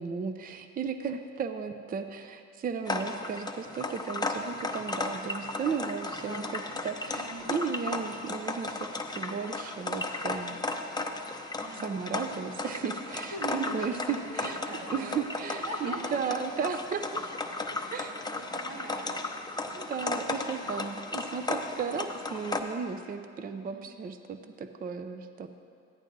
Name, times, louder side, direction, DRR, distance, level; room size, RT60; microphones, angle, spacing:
voice 1, 0.0-10.6 11.8-14.6 14.9-17.3 17.9-18.1 19.7-25.5, right 6 dB, 30° right, 8 dB, 0.4 m, -35 dB
sound 1, 2.9-22.6, left 2 dB, 15° left, 0.6 m, -35 dB
voice 2, 5.6-6.5 7.1-7.6 11.6-12.0 13.3-15.2 15.6-16.2 17.7-20.0 22.0-22.1 23.5-23.9, right 2 dB, 90° right, -3 dB, 1.9 m, -42 dB
14.0 x 10.5 x 2.6 m, 2.3 s
cardioid pair, 90°, 30 cm